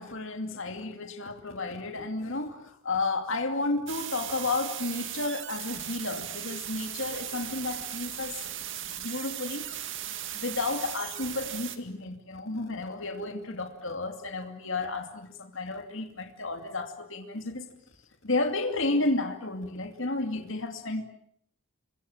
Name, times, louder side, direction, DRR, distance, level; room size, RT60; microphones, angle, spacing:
voice 1, 0.0-8.4 9.0-9.6 10.3-17.7 18.2-21.0, left 2 dB, 60° left, 6 dB, 2.7 m, -32 dB
sound 1, 3.9-11.8, right 11 dB, 55° right, 2.2 m, -37 dB
28.0 x 23.5 x 7.4 m, 0.70 s
head